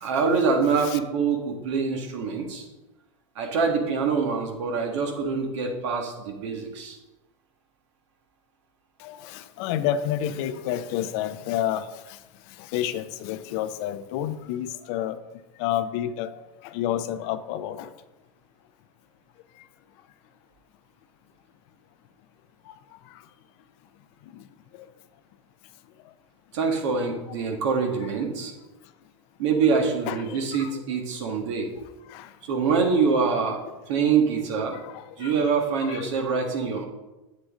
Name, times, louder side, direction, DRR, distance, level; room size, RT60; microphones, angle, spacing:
voice 1, 0.0-2.6 3.4-7.0 26.5-28.5 29.4-31.7 32.4-33.6 33.9-34.8 35.2-36.9, right 5 dB, 70° right, 1.9 m, -25 dB
voice 2, 9.0-11.9 12.7-15.2 15.6-17.9 28.0-28.1 30.1-30.7 32.1-32.3 34.7-35.5 35.8-36.0, left 11 dB, 60° left, 0.7 m, -30 dB
8.4 x 7.4 x 3.8 m
hypercardioid pair, 95°, 16 cm